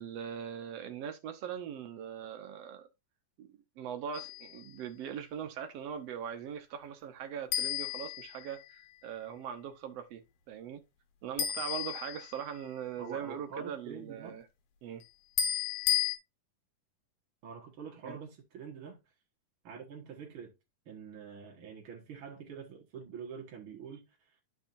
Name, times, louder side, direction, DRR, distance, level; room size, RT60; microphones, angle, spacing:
voice 1, 0.0-2.9 3.4-10.2 10.5-10.8 11.2-14.5 14.8-15.0 18.0-18.2, right 8 dB, 75° right, 1.4 m, -41 dB
small bell, 4.1-4.6 7.5-8.9 11.4-12.7 15.4-16.2, left 10 dB, 90° left, 3.0 m, -33 dB
voice 2, 13.0-14.4 17.4-19.0 19.6-20.5 20.8-24.4, right 6 dB, 50° right, 1.7 m, -46 dB
13.0 x 4.5 x 2.6 m
omnidirectional pair, 4.1 m